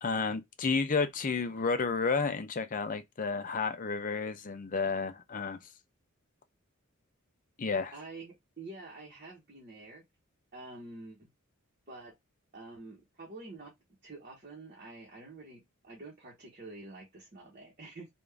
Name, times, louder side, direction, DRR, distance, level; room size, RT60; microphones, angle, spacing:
voice 1, 0.0-5.6 7.6-7.9, left 4 dB, 40° left, 0.5 m, -31 dB
voice 2, 7.9-10.0 10.5-11.3 11.9-12.1 12.5-13.7 14.0-18.1, right 2 dB, 40° right, 1.1 m, -47 dB
3.5 x 2.5 x 3.4 m
head